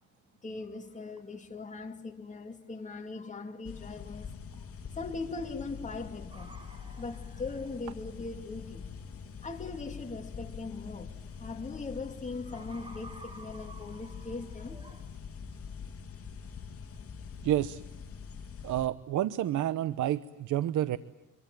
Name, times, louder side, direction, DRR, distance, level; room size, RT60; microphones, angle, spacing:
voice 1, 0.4-4.6 4.9-6.6 7.0-8.9 9.4-14.8, left 3 dB, 25° left, 2.6 m, -40 dB
sound 1, 3.6-18.9, left 6 dB, 50° left, 2.8 m, -44 dB
sound 2, 6.3-15.1, right 1 dB, 20° right, 6.1 m, -55 dB
voice 2, 17.4-17.8 18.6-21.0, right 12 dB, 75° right, 1.0 m, -29 dB
27.0 x 23.5 x 9.2 m
cardioid pair, 90°, 30 cm